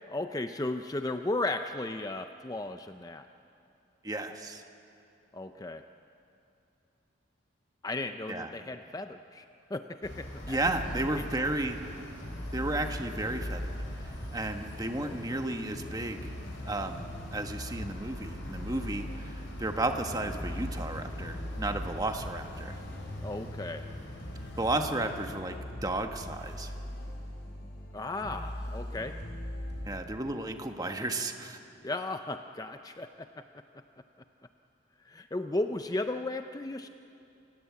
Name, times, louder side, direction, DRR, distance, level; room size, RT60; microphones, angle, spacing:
voice 1, 0.1-3.3 5.3-5.8 7.8-10.6 11.2-11.3 15.0-15.4 23.2-23.8 27.9-29.2 31.8-33.4 35.0-36.9, left 2 dB, 20° left, 7 dB, 0.5 m, -35 dB
voice 2, 4.0-4.6 8.3-8.5 10.5-11.8 12.5-13.8 14.3-16.3 16.6-22.8 24.6-25.6 25.8-26.7 29.8-31.6, right 2 dB, 20° right, 5 dB, 1.3 m, -33 dB
sound 1, 10.0-25.3, left 1 dB, 75° left, 4.8 m, -44 dB
sound 2, 10.4-29.9, left 1 dB, 60° left, 4.8 m, -41 dB
28.0 x 17.0 x 8.4 m, 2.7 s
head